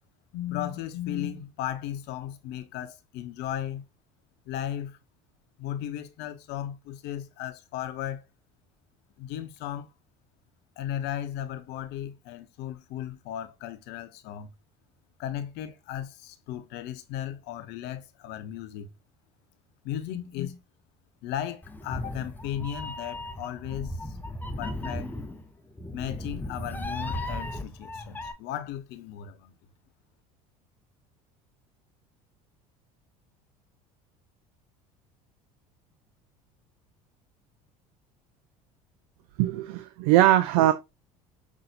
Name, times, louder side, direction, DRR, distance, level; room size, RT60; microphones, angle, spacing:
voice 1, 0.3-3.9 4.5-5.0 5.6-8.2 9.2-9.9 10.8-14.5 15.2-18.9 19.8-20.6 21.2-24.2 24.6-25.1 25.9-29.5, left 11 dB, 60° left, 0.7 m, -35 dB
Meow, 21.6-28.3, left 1 dB, 10° left, 0.6 m, -36 dB
voice 2, 39.4-40.7, right 14 dB, 70° right, 0.4 m, -21 dB
5.6 x 2.6 x 2.7 m
hypercardioid pair, 75°, 19 cm